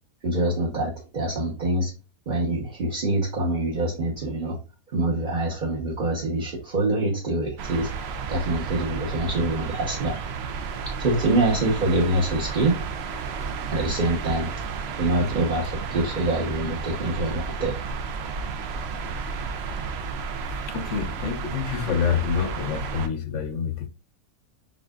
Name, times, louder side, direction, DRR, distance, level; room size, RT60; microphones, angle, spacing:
voice 1, 0.2-1.9 2.3-4.6 4.9-7.9 8.3-10.3 11.0-12.8 13.7-14.5 15.0-17.7, right 2 dB, 35° right, 1.0 m, -25 dB
sound 1, 7.6-23.1, right 5 dB, 65° right, 0.6 m, -32 dB
voice 2, 20.7-23.9, left 7 dB, 60° left, 0.9 m, -27 dB
7.2 x 2.5 x 2.3 m
omnidirectional pair, 1.6 m